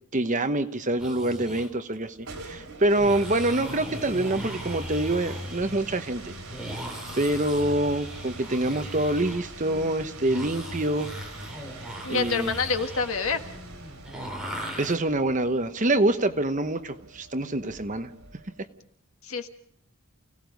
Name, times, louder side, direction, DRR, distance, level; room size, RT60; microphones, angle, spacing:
voice 1, 0.1-6.3 6.7-6.9 7.2-11.1 12.1-12.6 14.8-18.1, right 1 dB, 35° right, 8 dB, 1.0 m, -26 dB
sound 1, 0.9-1.7 2.9-14.9, equal, 5° right, 4.1 m, -39 dB
sound 2, 2.0-18.7, right 2 dB, 75° right, 4.2 m, -44 dB
voice 2, 12.0-13.4 19.2-19.5, left 4 dB, 70° left, 6 dB, 1.7 m, -27 dB
29.0 x 17.5 x 5.3 m, 0.69 s
head